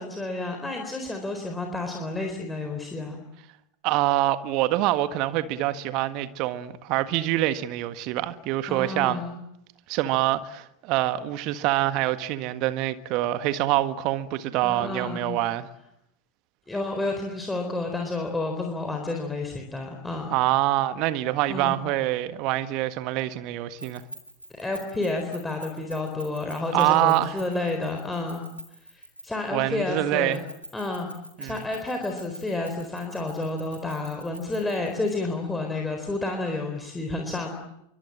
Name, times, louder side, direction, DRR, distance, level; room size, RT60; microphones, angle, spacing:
voice 1, 0.0-3.2 8.7-9.4 14.6-15.4 16.7-20.3 21.5-21.8 24.6-28.4 28.8-30.4 30.7-31.1 31.4-37.6, left 2 dB, 10° left, 4.2 m, -30 dB
voice 2, 3.8-9.2 9.9-15.7 20.3-24.0 26.7-27.4 29.5-30.4 31.4-31.7, right 15 dB, 40° right, 1.6 m, -25 dB
Keys jangling, 23.8-29.5 30.3-35.1, right 1 dB, 90° right, 5.9 m, -43 dB
27.0 x 24.5 x 8.8 m
figure-of-eight pair, 90°, 0 cm